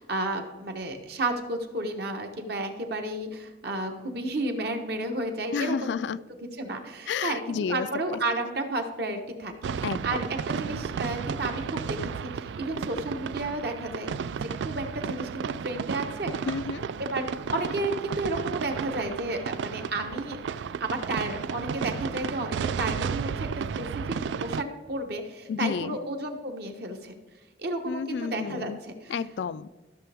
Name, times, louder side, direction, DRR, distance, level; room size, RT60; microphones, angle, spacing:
voice 1, 0.0-5.9 6.6-7.4 7.7-14.1 14.6-16.4 17.0-20.4 20.8-23.5 23.8-24.2 24.4-27.1 27.6-28.7 29.0-29.1, right 2 dB, 60° right, 4 dB, 1.2 m, -32 dB
voice 2, 5.5-6.2 7.1-7.9 9.8-10.2 16.5-16.8 25.5-26.0 27.9-28.8 29.1-29.7, left 6 dB, 70° left, 15 dB, 0.3 m, -31 dB
sound 1, 9.6-24.6, right 6 dB, 75° right, 0.3 m, -33 dB
13.5 x 6.7 x 3.5 m, 1.2 s
head